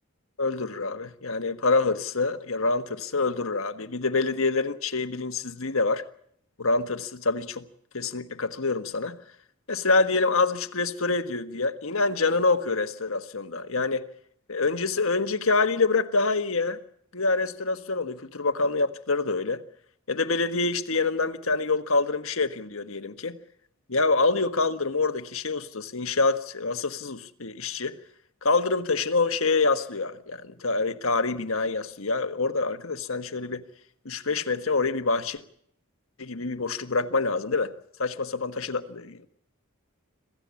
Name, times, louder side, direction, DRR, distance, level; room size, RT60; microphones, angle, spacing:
voice 1, 0.4-6.0 6.6-7.6 7.9-9.2 9.7-14.1 14.5-16.8 17.1-19.6 20.1-23.4 23.9-27.9 28.4-33.6 34.0-35.4 36.2-37.7 38.0-39.2, left 3 dB, 70° left, 1.6 m, -26 dB
27.0 x 16.0 x 8.5 m
head